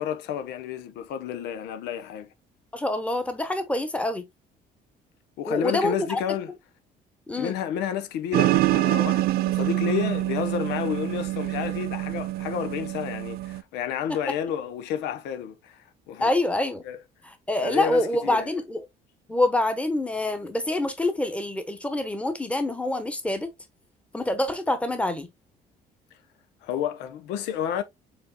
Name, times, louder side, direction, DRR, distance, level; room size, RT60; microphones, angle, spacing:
voice 1, 0.0-2.3 5.4-6.5 7.4-15.8 16.1-16.3 16.8-17.0 17.6-18.5 26.6-27.8, left 9 dB, 90° left, 0.8 m, -30 dB
voice 2, 2.7-4.3 5.5-6.2 7.3-7.6 16.2-16.8 17.5-18.8 19.3-23.5 24.1-25.3, left 1 dB, 5° left, 1.0 m, -26 dB
sound 1, 8.3-13.6, right 17 dB, 65° right, 0.4 m, -25 dB
5.2 x 4.1 x 2.2 m
cardioid pair, 110°, 17 cm